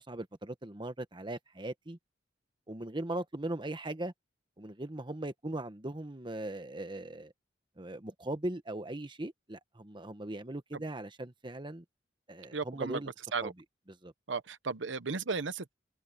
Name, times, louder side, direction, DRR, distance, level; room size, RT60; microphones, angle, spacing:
voice 1, 0.0-2.0 2.7-4.1 4.6-7.3 7.8-11.8 12.3-13.1 13.4-13.5 14.0-14.1, right 1 dB, 25° right, 1.2 m, -39 dB
voice 2, 12.5-13.0 13.3-13.5 14.3-15.7, right 4 dB, 85° right, 1.0 m, -35 dB
head